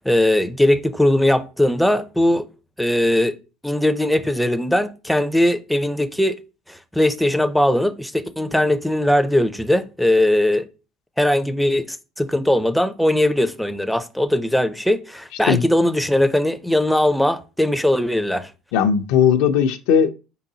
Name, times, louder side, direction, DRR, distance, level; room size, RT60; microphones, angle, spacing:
voice 1, 0.1-2.4 2.8-3.4 3.6-6.4 6.7-10.7 11.2-18.5, left 1 dB, ahead, 0.4 m, -19 dB
voice 2, 18.7-20.1, left 7 dB, 80° left, 0.5 m, -17 dB
4.7 x 3.9 x 2.8 m
cardioid pair, 120°, 0 cm